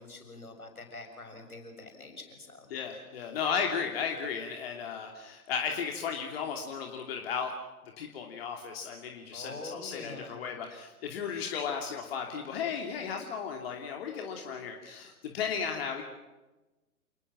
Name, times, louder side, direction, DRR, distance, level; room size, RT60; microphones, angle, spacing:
voice 1, 0.0-2.7 9.3-10.4, left 2 dB, 80° left, 4 dB, 6.9 m, -45 dB
voice 2, 2.7-7.5 8.0-16.0, left 6 dB, 45° left, 2 dB, 2.9 m, -35 dB
28.5 x 20.5 x 7.6 m, 1.1 s
figure-of-eight pair, 120°, 43 cm